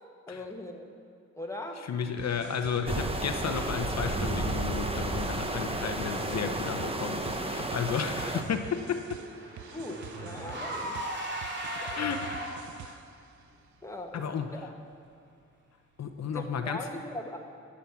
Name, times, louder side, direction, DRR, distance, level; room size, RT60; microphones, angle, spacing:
voice 1, 0.3-0.9 1.4-1.8 6.4-6.5 9.7-11.0 11.8-12.2 13.8-14.7 16.2-17.4, left 1 dB, 10° left, 2 dB, 1.5 m, -40 dB
voice 2, 1.8-9.2 11.9-12.3 12.8-13.0 14.1-14.5 16.0-16.9, left 7 dB, 65° left, 7 dB, 0.8 m, -33 dB
sound 1, 2.2-13.2, right 9 dB, 80° right, 0.6 m, -46 dB
sound 2, 2.9-8.4, right 2 dB, 20° right, 1.0 m, -32 dB
Car / Engine, 8.4-12.9, equal, 40° right, 2.6 m, -38 dB
12.5 x 7.4 x 8.3 m, 2.6 s
cardioid pair, 90°, 29 cm